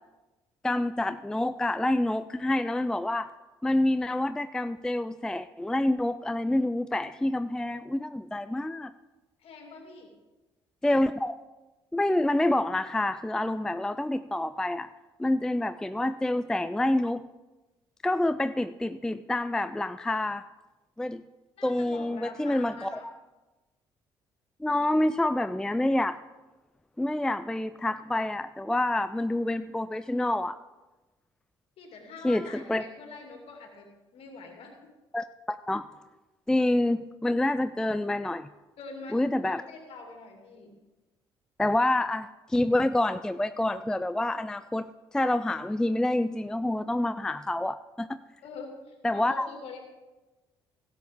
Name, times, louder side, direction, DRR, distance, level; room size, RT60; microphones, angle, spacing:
voice 1, 0.6-3.3 3.6-8.9 10.8-11.3 11.9-14.9 15.2-17.2 18.0-20.4 21.0-21.2 21.6-23.0 24.6-26.2 27.0-30.6 32.2-32.8 35.1-35.8 36.5-38.5 39.1-39.6 41.6-44.9 45.1-48.2 49.0-49.5, left 1 dB, 5° left, 12 dB, 0.3 m, -27 dB
voice 2, 9.4-10.1 15.7-15.8 21.6-23.1 31.8-33.9 34.1-34.7 38.8-40.7 48.4-49.8, left 4 dB, 50° left, 2 dB, 2.5 m, -44 dB
17.0 x 7.8 x 3.6 m, 1.1 s
figure-of-eight pair, 45°, 12 cm